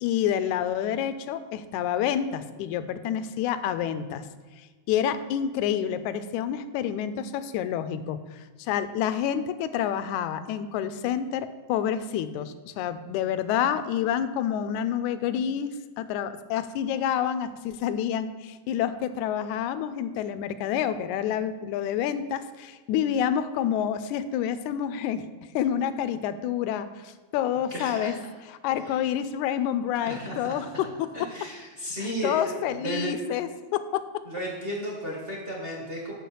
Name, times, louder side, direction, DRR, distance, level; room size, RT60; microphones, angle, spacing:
voice 1, 0.0-4.3 4.9-25.2 25.6-28.2 28.6-31.3 32.2-34.0, left 9 dB, 85° left, 12 dB, 2.0 m, -28 dB
voice 2, 27.7-28.1 28.8-29.0 30.0-30.5 31.1-33.1 34.2-36.1, right 1 dB, 30° right, -2 dB, 1.0 m, -34 dB
7.5 x 5.7 x 6.9 m, 1.4 s
omnidirectional pair, 3.3 m